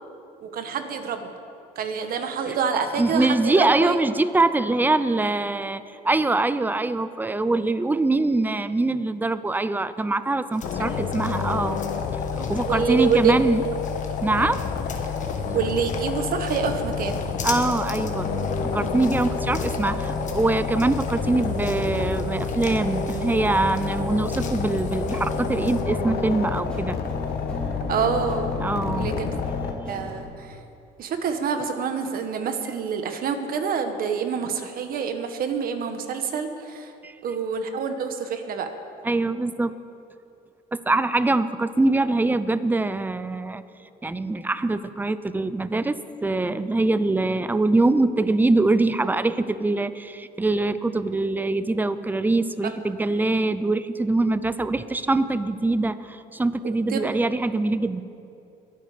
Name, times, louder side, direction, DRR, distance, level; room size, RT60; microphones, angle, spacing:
voice 1, 0.4-1.3 1.7-4.0 10.8-11.1 12.7-13.3 14.4-14.6 15.5-17.3 27.9-28.5 28.9-29.3 29.9-30.6 31.0-36.9 37.2-38.7 52.6-52.7 56.6-57.2, right 6 dB, 60° right, 7 dB, 1.4 m, -27 dB
voice 2, 2.7-11.8 12.4-13.6 14.2-14.7 17.4-18.3 18.7-27.0 28.6-29.1 37.0-37.1 39.0-39.7 40.9-43.6 44.0-45.9 46.2-58.0, right 2 dB, 10° right, 13 dB, 0.6 m, -23 dB
sound 1, 10.5-25.8, left 6 dB, 45° left, 1.7 m, -43 dB
sound 2, 10.6-29.7, left 6 dB, 70° left, 1.4 m, -29 dB
sound 3, 18.1-30.2, right 1 dB, 5° left, 3.5 m, -34 dB
22.0 x 9.0 x 5.1 m, 2.7 s
cardioid pair, 110°, 17 cm